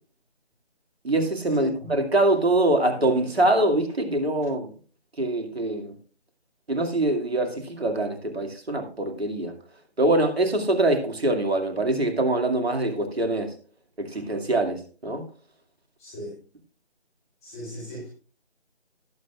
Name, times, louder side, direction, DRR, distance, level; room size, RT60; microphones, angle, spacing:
voice 1, 1.0-4.7 5.2-5.9 6.7-9.5 10.0-13.5 14.0-15.3, right 2 dB, 65° right, 2.5 m, -24 dB
voice 2, 16.0-16.3 17.4-18.1, equal, 15° left, 3.1 m, -37 dB
18.5 x 7.7 x 2.5 m
figure-of-eight pair, 160°, 33 cm